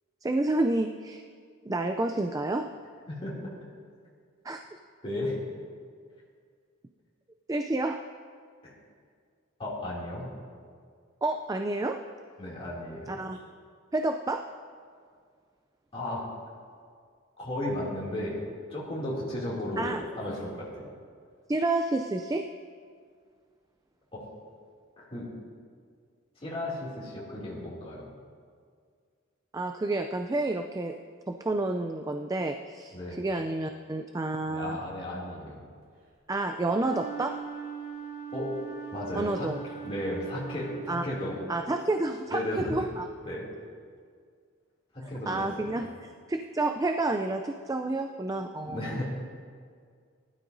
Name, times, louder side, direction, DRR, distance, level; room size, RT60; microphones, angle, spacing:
voice 1, 0.2-1.2 1.7-2.7 4.4-4.6 7.5-8.0 11.2-12.0 13.1-13.4 13.9-14.4 19.8-20.0 21.5-22.5 29.5-31.0 31.3-34.8 36.3-37.4 39.2-39.6 40.9-41.0 41.5-43.1 45.3-49.0, right 2 dB, 15° right, 6 dB, 0.4 m, -29 dB
voice 2, 3.1-3.5 5.0-5.4 8.6-8.7 9.6-10.3 12.4-13.2 15.9-16.2 17.4-18.4 18.7-20.9 24.1-24.2 25.0-25.3 26.4-28.1 32.9-33.2 34.4-35.6 38.3-38.5 38.9-39.5 39.8-41.4 42.3-42.7 43.2-43.5 44.9-45.9 48.6-49.0, left 1 dB, 30° left, -7 dB, 2.6 m, -34 dB
Wind instrument woodwind instrument, 36.7-41.2, right 7 dB, 90° right, 3.8 m, -40 dB
19.5 x 12.0 x 2.7 m, 2.1 s
head